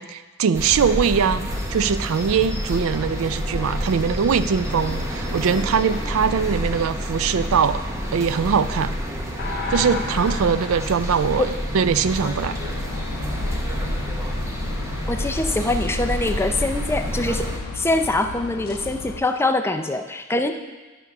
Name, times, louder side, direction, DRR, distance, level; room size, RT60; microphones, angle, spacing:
voice 1, 0.0-7.8 8.1-9.0 9.7-12.6, right 6 dB, 65° right, 13 dB, 0.4 m, -22 dB
sound 1, 0.5-17.6, equal, 15° right, 1.0 m, -28 dB
sound 2, 9.4-15.2 18.7-18.8, left 2 dB, 45° left, 1.5 m, -35 dB
sound 3, 12.0-19.2, left 4 dB, 85° left, 0.5 m, -36 dB
voice 2, 15.1-17.5 17.7-20.5, left 2 dB, 10° left, 6 dB, 0.5 m, -23 dB
11.0 x 5.5 x 5.9 m, 1.2 s
head